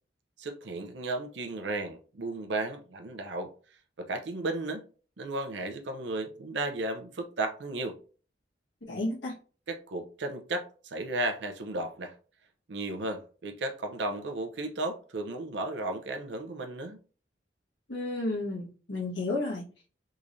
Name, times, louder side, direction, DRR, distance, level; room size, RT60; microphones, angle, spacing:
voice 1, 0.4-3.5 4.0-4.8 5.2-8.0 9.7-12.1 12.7-17.0, right 2 dB, 70° right, 0.6 m, -34 dB
voice 2, 8.9-9.3 17.9-19.6, left 2 dB, 90° left, 1.4 m, -32 dB
3.7 x 3.1 x 2.6 m
head